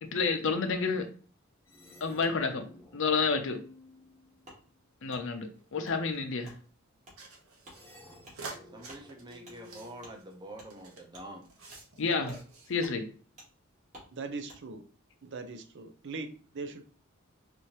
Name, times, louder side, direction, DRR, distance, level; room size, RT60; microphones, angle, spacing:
voice 1, 0.0-1.1 2.0-2.7 2.9-3.6 5.0-6.5 12.0-12.4 12.7-13.1, left 4 dB, 65° left, 6 dB, 0.7 m, -30 dB
sound 1, 1.7-4.9 7.7-10.8, left 1 dB, 10° left, 0.8 m, -55 dB
Wood, 4.4-4.6 5.1-5.2 5.8-6.0 6.4-6.6 7.0-7.2 7.6-7.8 8.2-8.4 8.8-9.0 9.4-9.6 10.0-10.1 10.5-10.7 11.1-11.3 11.7-11.8 12.3-12.4 12.8-13.0 13.4-13.5 13.9-14.1 14.5-14.6, equal, 35° right, 1.6 m, -52 dB
sound 2, 5.5-6.5 7.2-11.0 11.4-12.0 12.3-12.8, right 3 dB, 85° right, 1.1 m, -48 dB
voice 2, 8.7-11.5, right 1 dB, 20° right, 3 dB, 0.7 m, -46 dB
voice 3, 14.1-14.8 15.2-16.8, right 3 dB, 60° right, 8 dB, 0.6 m, -40 dB
4.3 x 2.7 x 3.0 m, 0.41 s
head